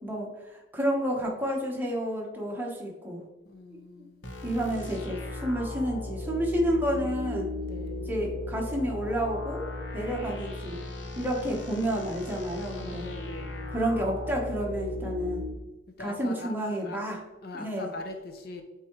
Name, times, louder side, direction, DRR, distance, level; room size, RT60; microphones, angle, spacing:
voice 1, 0.0-3.2 3.7-4.1 4.4-7.5 8.1-9.7 9.9-10.8 11.2-13.0 13.7-15.5 16.0-17.2 17.6-17.9, equal, 10° right, -2 dB, 1.1 m, -30 dB
voice 2, 3.4-4.2 7.6-8.1 12.7-13.8 16.0-17.0 17.4-18.6, left 2 dB, 55° left, 5 dB, 0.6 m, -42 dB
sound 1, 4.2-15.5, left 2 dB, 75° left, 1.1 m, -36 dB
8.4 x 3.6 x 3.1 m, 1.1 s
head